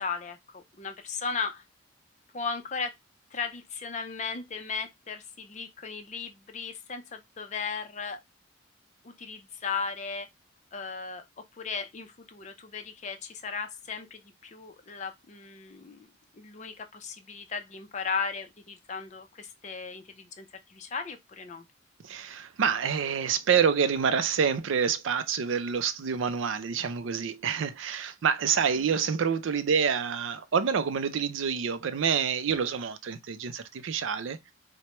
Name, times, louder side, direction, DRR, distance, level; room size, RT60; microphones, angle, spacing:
voice 1, 0.0-1.6 2.3-2.9 3.3-8.2 9.0-10.3 10.7-11.2 11.5-16.1 16.3-21.6 28.8-28.9, left 5 dB, 35° left, 0.5 m, -36 dB
voice 2, 22.0-34.5, right 6 dB, 70° right, 0.4 m, -27 dB
4.4 x 2.1 x 2.9 m
head